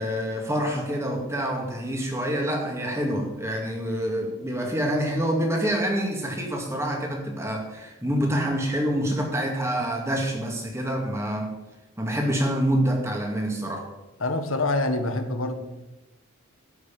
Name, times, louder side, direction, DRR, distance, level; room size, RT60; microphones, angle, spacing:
voice 1, 0.0-11.5 12.0-13.9, equal, 15° right, 1 dB, 2.3 m, -26 dB
voice 2, 14.2-15.6, left 2 dB, 80° left, 7 dB, 1.6 m, -25 dB
13.0 x 6.4 x 9.0 m, 1.0 s
head